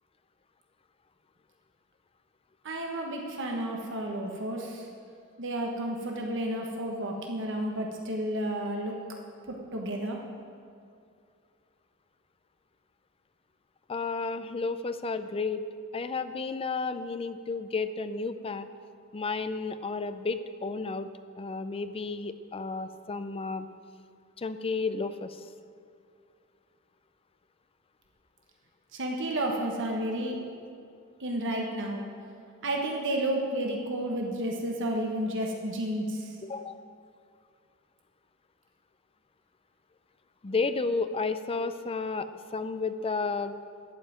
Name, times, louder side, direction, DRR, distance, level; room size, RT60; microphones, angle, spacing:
voice 1, 2.6-4.9 5.4-8.9 9.5-10.2 28.9-30.4 31.2-32.0 32.6-36.3, right 1 dB, 60° right, 1 dB, 1.3 m, -31 dB
voice 2, 13.9-15.6 15.9-18.7 19.1-21.1 21.4-23.7 24.4-25.5 36.4-36.8 40.4-43.6, left 4 dB, 25° left, 11 dB, 0.5 m, -32 dB
11.5 x 5.7 x 8.8 m, 2.3 s
head